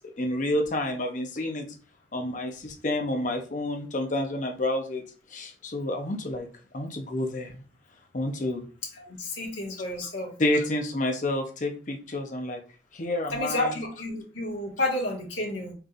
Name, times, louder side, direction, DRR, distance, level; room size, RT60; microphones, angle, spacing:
voice 1, 0.2-1.8 2.1-5.0 5.3-6.5 6.7-7.6 8.1-8.7 10.4-12.6 12.9-13.7, left 1 dB, 45° left, 4 dB, 0.7 m, -29 dB
voice 2, 9.1-10.3 13.3-15.7, left 1 dB, 85° left, -2 dB, 1.6 m, -30 dB
4.6 x 3.3 x 2.4 m, 0.37 s
head